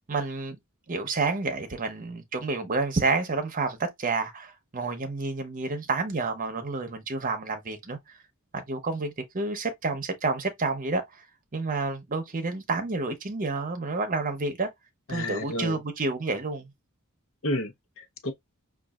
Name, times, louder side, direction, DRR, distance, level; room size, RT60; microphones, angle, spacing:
voice 1, 0.1-0.6 0.9-8.0 8.5-11.0 11.5-14.7 15.1-16.7, right 3 dB, 40° right, 0.8 m, -29 dB
voice 2, 15.1-15.8 17.4-18.3, left 1 dB, 65° left, 0.9 m, -31 dB
5.2 x 2.5 x 2.4 m
head